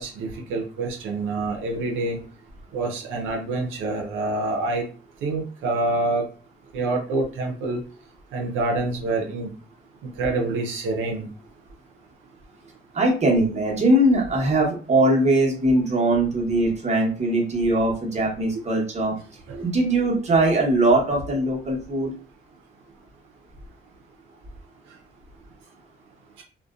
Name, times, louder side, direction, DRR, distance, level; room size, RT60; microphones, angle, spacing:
voice 1, 0.0-2.2 2.7-4.8 5.2-6.2 6.7-7.8 8.3-9.5 10.2-11.3 19.5-19.6, right 2 dB, 80° right, 0 dB, 0.6 m, -26 dB
voice 2, 12.9-19.1 19.6-22.1, right 1 dB, 35° right, -2 dB, 1.0 m, -21 dB
2.5 x 2.2 x 2.4 m, 0.39 s
cardioid pair, 90°, 20 cm